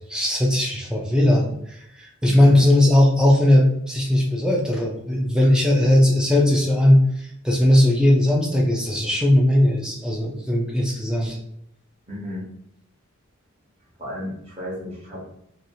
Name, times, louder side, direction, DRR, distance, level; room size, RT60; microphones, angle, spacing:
voice 1, 0.1-11.4, left 1 dB, 5° right, -1 dB, 0.4 m, -18 dB
voice 2, 2.2-2.6 5.4-5.5 12.1-12.4 14.0-15.3, left 1 dB, 30° right, -7 dB, 0.9 m, -34 dB
2.8 x 2.4 x 2.6 m, 0.74 s
head